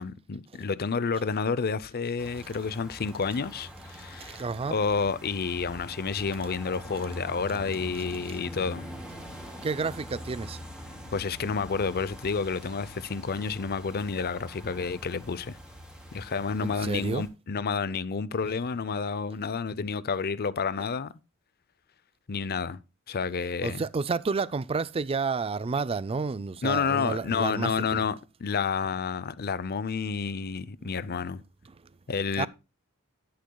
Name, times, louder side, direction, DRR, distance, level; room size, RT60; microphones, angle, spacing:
voice 1, 0.0-4.4 4.7-8.9 11.1-15.6 16.1-21.1 22.3-22.8 23.1-23.8 26.6-31.4 32.1-32.5, left 5 dB, 45° left, 0.6 m, -30 dB
sound 1, 2.2-17.3, equal, 5° right, 2.6 m, -44 dB
voice 2, 4.2-4.8 8.3-8.4 9.6-10.6 16.6-17.3 23.6-28.0 30.9-31.0 32.4-32.5, right 4 dB, 25° right, 0.4 m, -30 dB
11.5 x 10.0 x 2.3 m
head